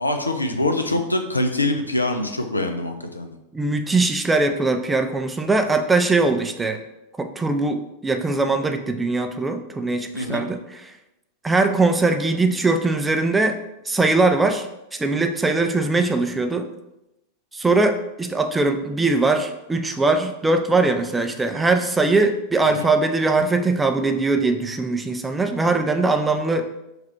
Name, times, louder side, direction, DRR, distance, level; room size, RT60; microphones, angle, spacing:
voice 1, 0.0-3.3 10.2-10.5 22.8-22.9, left 2 dB, 80° left, 5 dB, 0.4 m, -24 dB
voice 2, 3.5-6.8 7.2-10.9 11.4-13.6 13.9-16.7 17.5-26.7, right 3 dB, 10° right, 6 dB, 0.3 m, -21 dB
3.3 x 2.3 x 4.4 m, 0.89 s
figure-of-eight pair, 90°, 0 cm